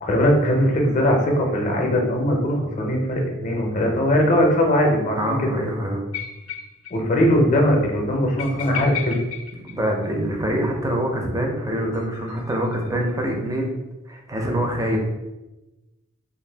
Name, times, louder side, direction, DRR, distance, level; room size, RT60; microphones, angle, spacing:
voice 1, 0.0-5.5 6.9-9.2, equal, 35° left, 1 dB, 0.5 m, -20 dB
voice 2, 5.1-6.0 9.6-13.7 14.1-15.0, right 1 dB, 15° right, 1 dB, 0.4 m, -25 dB
sound 1, 6.1-7.0 7.2-7.3 7.6-7.7 8.4-10.4 11.9-13.2, left 8 dB, 85° left, 0.4 m, -34 dB
2.5 x 2.2 x 3.3 m, 1.0 s
head